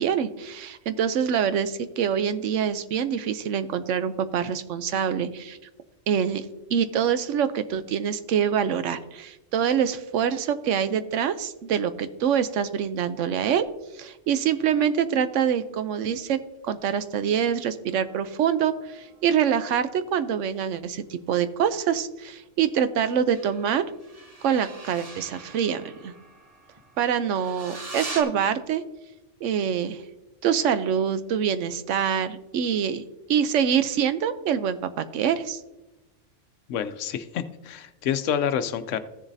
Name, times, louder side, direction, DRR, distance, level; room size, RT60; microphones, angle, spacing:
voice 1, 0.0-5.6 6.1-6.4 6.7-13.7 13.9-23.8 24.4-26.1 27.0-28.8 29.4-30.0 30.4-33.0 33.3-35.6, right 8 dB, 80° right, 12 dB, 1.0 m, -25 dB
sound 1, 17.9-21.0 23.3-28.2, right 2 dB, 30° right, 1.1 m, -43 dB
voice 2, 36.7-39.0, left 8 dB, 80° left, 12 dB, 1.0 m, -28 dB
15.0 x 7.1 x 2.7 m, 1.0 s
omnidirectional pair, 1.3 m